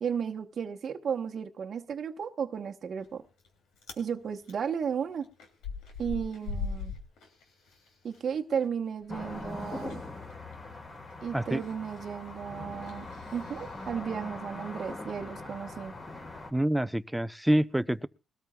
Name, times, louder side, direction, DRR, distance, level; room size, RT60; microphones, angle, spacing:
voice 1, 0.0-3.2 4.0-5.3 6.0-6.9 8.0-10.0 11.2-13.1 13.3-15.9, right 7 dB, 55° right, 1.0 m, -34 dB
Chewing mastication, 3.0-3.5 3.7-4.1 4.5-8.2 8.5-13.9, left 4 dB, 85° left, 2.9 m, -42 dB
sound 1, 9.1-16.5, left 2 dB, 40° left, 3.4 m, -41 dB
voice 2, 16.5-18.1, right 1 dB, 5° right, 0.6 m, -27 dB
21.5 x 13.5 x 2.3 m
cardioid pair, 90°, 0 cm